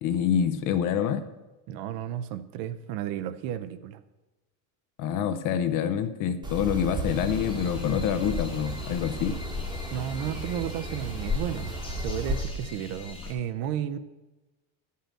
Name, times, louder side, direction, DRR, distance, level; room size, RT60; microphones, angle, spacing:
voice 1, 0.0-1.2 5.0-9.4, left 8 dB, 45° left, 11 dB, 0.7 m, -26 dB
voice 2, 1.7-4.0 9.9-11.7 12.0-14.0, right 10 dB, 55° right, 12 dB, 0.7 m, -33 dB
sound 1, 6.4-12.4, right 1 dB, 10° right, 1.1 m, -35 dB
sound 2, 7.0-13.3, left 4 dB, 10° left, 0.9 m, -38 dB
10.0 x 5.6 x 7.5 m, 1.1 s
cardioid pair, 165°, 44 cm